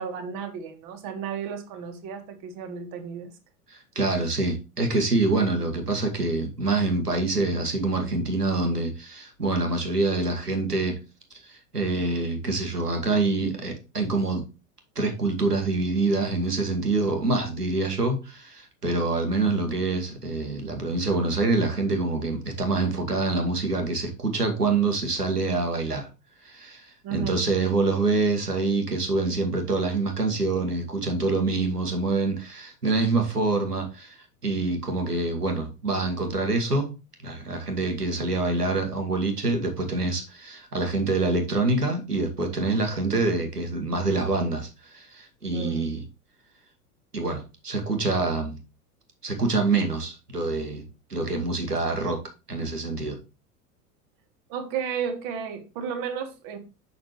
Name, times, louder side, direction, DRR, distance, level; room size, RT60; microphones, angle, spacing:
voice 1, 0.0-3.3 27.0-27.4 45.5-45.9 54.5-56.6, right 7 dB, 40° right, 1.8 m, -33 dB
voice 2, 3.7-11.0 11.4-14.4 15.0-26.1 26.4-36.9 37.2-46.0 47.1-48.6 49.2-50.8 51.1-52.2 52.5-53.2, right 3 dB, 85° right, 1.8 m, -26 dB
6.8 x 6.0 x 3.1 m
figure-of-eight pair, 85°, 46 cm